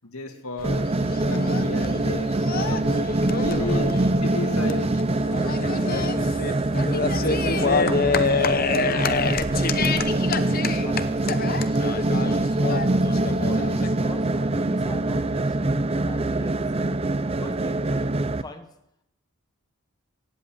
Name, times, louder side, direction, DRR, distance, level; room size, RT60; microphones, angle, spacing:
voice 1, 0.0-0.9 1.2-4.9 5.3-6.2 6.9-7.7, left 2 dB, 85° left, 5 dB, 2.1 m, -34 dB
sound 1, 0.6-13.9, left 5 dB, 45° left, 0.8 m, -28 dB
sound 2, 0.6-18.4, right 2 dB, 25° right, 0.5 m, -24 dB
voice 2, 3.3-4.0 4.8-5.1 5.6-6.3 6.7-12.5 12.9-16.6 17.3-18.7, left 1 dB, 20° left, 5 dB, 1.1 m, -42 dB
16.0 x 8.1 x 8.8 m, 0.82 s
head